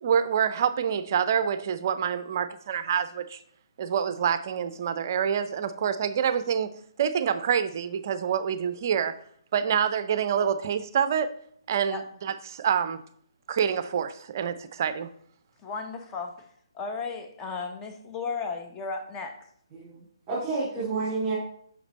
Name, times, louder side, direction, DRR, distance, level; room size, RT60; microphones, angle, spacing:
voice 1, 0.0-3.4 3.8-6.7 7.0-9.1 9.5-11.3 11.7-13.0 13.5-15.1, right 8 dB, 40° right, 12 dB, 0.5 m, -26 dB
voice 2, 15.6-16.5 16.7-19.4, left 4 dB, 15° left, 4 dB, 0.9 m, -34 dB
voice 3, 19.7-21.4, right 3 dB, 20° right, -8 dB, 2.6 m, -30 dB
5.9 x 5.8 x 4.2 m, 0.64 s
figure-of-eight pair, 135°, 3 cm